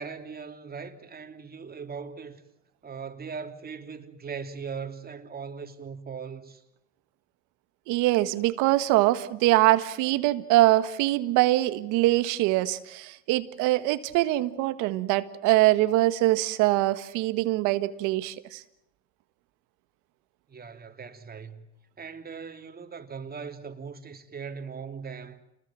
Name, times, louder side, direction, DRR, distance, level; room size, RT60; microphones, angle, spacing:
voice 1, 0.0-2.4 2.8-6.6 20.5-21.7 22.0-25.4, right 6 dB, 30° right, 3.2 m, -39 dB
voice 2, 7.9-18.6, right 17 dB, 85° right, 1.6 m, -23 dB
29.5 x 21.0 x 7.5 m
cardioid pair, 100°, 30 cm